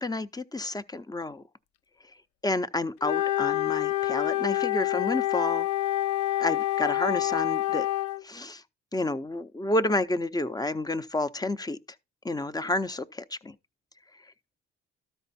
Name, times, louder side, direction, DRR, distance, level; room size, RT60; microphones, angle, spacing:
voice 1, 0.0-1.4 2.4-5.7 6.4-7.9 8.2-8.6 8.9-11.8 12.2-13.5, left 2 dB, 15° left, 0.6 m, -30 dB
Wind instrument woodwind instrument, 3.0-8.2, left 15 dB, 75° left, 0.5 m, -27 dB
12.5 x 4.5 x 4.1 m
cardioid pair, 90°, 30 cm